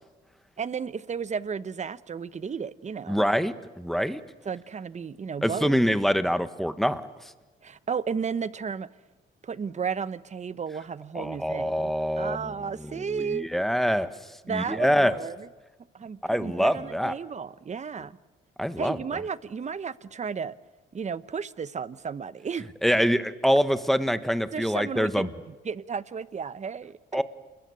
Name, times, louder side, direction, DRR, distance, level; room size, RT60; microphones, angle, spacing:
voice 1, 0.6-3.3 4.4-5.8 7.6-8.9 9.4-13.5 14.5-15.5 15.9-18.2 18.8-20.5 20.9-22.7 24.5-27.2, right 6 dB, 35° right, 1.0 m, -33 dB
voice 2, 3.1-4.2 5.4-7.3 11.1-12.5 12.8-14.1 14.5-15.2 16.2-17.1 18.6-19.0 22.8-25.3 27.1-27.2, equal, ahead, 1.5 m, -25 dB
28.5 x 21.0 x 8.4 m
cardioid pair, 90°, 20 cm